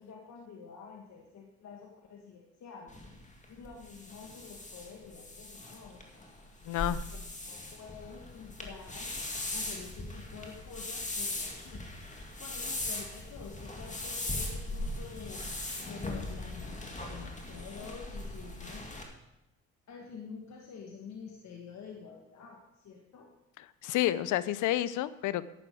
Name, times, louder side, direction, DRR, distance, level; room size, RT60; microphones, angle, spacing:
voice 1, 0.0-2.9 3.5-6.3 7.1-9.1 9.5-11.9 12.4-15.4 15.8-18.8 19.9-23.3, left 6 dB, 65° left, 0 dB, 1.5 m, -48 dB
sound 1, 2.9-19.0, left 2 dB, 25° left, 2.1 m, -39 dB
voice 2, 6.7-7.0 23.8-25.5, left 13 dB, 80° left, 17 dB, 0.6 m, -29 dB
11.5 x 8.3 x 5.2 m, 0.94 s
cardioid pair, 90°, 30 cm